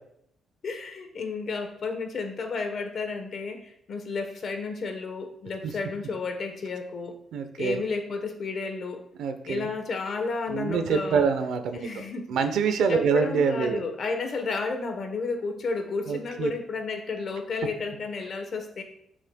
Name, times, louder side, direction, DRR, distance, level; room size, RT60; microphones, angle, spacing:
voice 1, 0.6-7.2 7.6-9.0 9.5-11.3 11.7-12.3 12.9-18.8, left 4 dB, 40° left, 6 dB, 1.0 m, -32 dB
voice 2, 7.3-7.8 9.2-9.7 10.5-11.8 12.3-13.8 16.1-16.5, right 6 dB, 80° right, 8 dB, 0.8 m, -25 dB
11.5 x 6.3 x 2.3 m, 0.72 s
cardioid pair, 170°, 0 cm